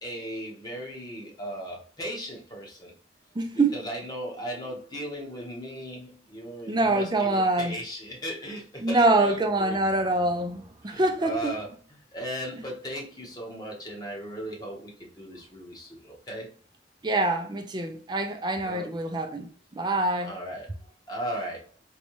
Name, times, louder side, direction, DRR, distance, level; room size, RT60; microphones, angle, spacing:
voice 1, 0.0-2.9 3.5-9.8 10.8-11.7 12.1-16.5 18.6-18.9 20.2-20.7 21.1-21.7, equal, 20° left, 1.0 m, -37 dB
voice 2, 3.3-3.8 6.7-7.8 8.8-11.6 12.5-12.6 17.0-19.5 19.7-20.4, right 2 dB, 25° right, 0.5 m, -25 dB
4.0 x 2.3 x 3.0 m
head